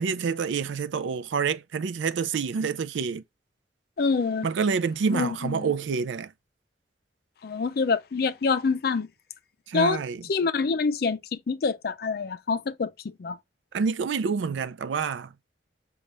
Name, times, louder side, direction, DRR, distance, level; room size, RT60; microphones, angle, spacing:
voice 1, 0.0-3.2 4.4-6.3 9.7-10.2 13.7-15.3, right 5 dB, 85° right, 0.4 m, -27 dB
voice 2, 4.0-4.5 5.1-5.7 7.4-9.1 9.7-10.0 10.3-13.4, left 4 dB, 55° left, 0.4 m, -26 dB
6.5 x 2.3 x 3.0 m
head